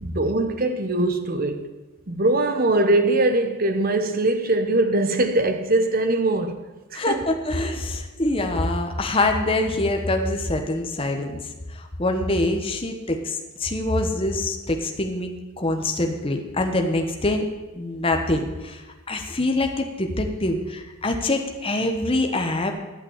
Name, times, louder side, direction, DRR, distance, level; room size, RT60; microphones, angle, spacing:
voice 1, 0.0-1.7 2.1-6.6 6.9-7.3, right 2 dB, 40° right, 0.9 m, -22 dB
voice 2, 6.9-11.4 11.7-17.4 17.7-18.8 19.1-22.7, left 2 dB, 25° left, 1.0 m, -25 dB
11.5 x 5.9 x 8.7 m
head